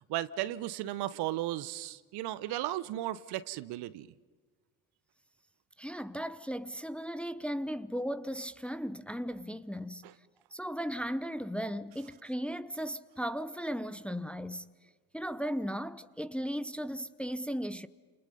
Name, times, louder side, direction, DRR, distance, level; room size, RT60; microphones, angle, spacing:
voice 1, 0.1-4.1 10.0-10.1, right 14 dB, 55° right, 0.9 m, -35 dB
voice 2, 5.8-10.0 10.5-14.7 15.1-17.9, equal, ahead, 0.8 m, -36 dB
30.0 x 28.0 x 5.4 m
figure-of-eight pair, 45°, 47 cm